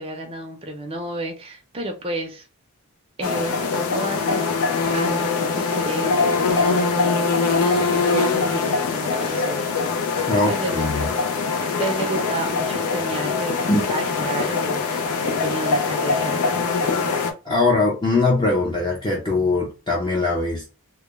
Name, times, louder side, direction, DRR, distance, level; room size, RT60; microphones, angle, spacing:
voice 1, 0.0-2.5 3.2-4.5 4.9-9.6 10.5-10.8 11.8-16.5, right 1 dB, 25° right, 3 dB, 0.5 m, -31 dB
sound 1, 3.2-17.3, left 4 dB, 80° left, 0.5 m, -23 dB
voice 2, 10.3-11.1 13.7-13.8 17.4-20.7, left 3 dB, 20° left, -4 dB, 0.5 m, -21 dB
2.2 x 2.1 x 3.0 m, 0.31 s
head